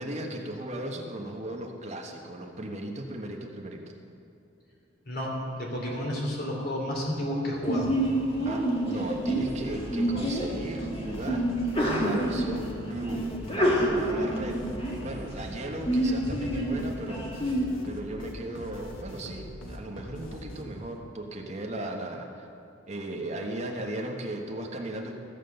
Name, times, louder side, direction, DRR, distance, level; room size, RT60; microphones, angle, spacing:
voice 1, 0.0-3.9 8.4-11.5 12.0-14.6 15.0-17.3 17.8-22.5 22.9-25.2, right 1 dB, 35° right, 1 dB, 1.3 m, -36 dB
voice 2, 5.6-7.9, left 1 dB, 50° left, -2 dB, 3.0 m, -31 dB
Sneeze, 7.6-17.6, right 1 dB, 30° left, 2.0 m, -28 dB
sound 1, 9.4-21.0, left 1 dB, 75° left, 1.4 m, -43 dB
15.0 x 7.4 x 6.7 m, 2.8 s
head